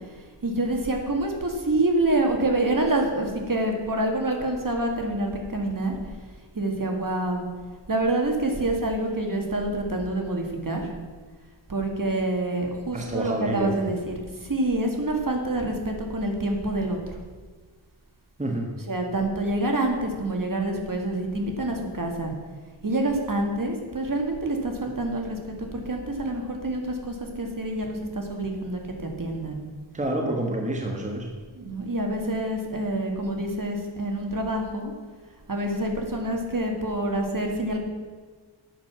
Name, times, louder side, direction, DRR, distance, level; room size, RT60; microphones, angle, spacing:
voice 1, 0.4-5.9 6.5-7.5 7.9-10.9 11.7-17.0 18.8-22.3 22.8-29.6 31.6-34.9 35.5-37.8, right 1 dB, 45° right, 2 dB, 2.0 m, -27 dB
voice 2, 12.9-13.8 18.4-18.7 29.9-31.3, right 1 dB, 15° right, 1 dB, 1.4 m, -28 dB
9.2 x 6.9 x 7.4 m, 1.5 s
wide cardioid pair, 65°, 47 cm